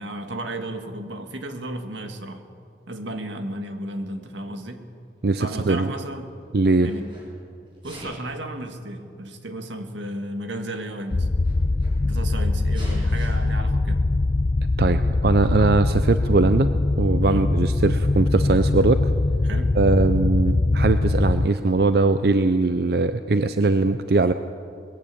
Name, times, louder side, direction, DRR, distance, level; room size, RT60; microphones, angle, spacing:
voice 1, 0.0-2.4 2.9-4.9 5.4-6.3 6.8-7.1 7.8-11.3 12.0-14.1 17.2-17.5 19.4-19.8, right 1 dB, 85° right, 6 dB, 1.9 m, -33 dB
voice 2, 5.2-5.9 6.5-6.9 14.8-16.7 17.0-19.1 19.7-24.3, right 3 dB, 55° right, 10 dB, 0.5 m, -20 dB
Sneeze, 5.3-6.3 6.7-7.3 7.7-8.4 9.3-9.4 10.3-10.4 10.6-10.7 11.1-12.2 12.7-13.3, equal, 25° right, 6.5 m, -44 dB
sound 1, 11.1-21.5, left 2 dB, 35° left, 0.4 m, -22 dB
20.5 x 16.0 x 8.5 m, 2.5 s
head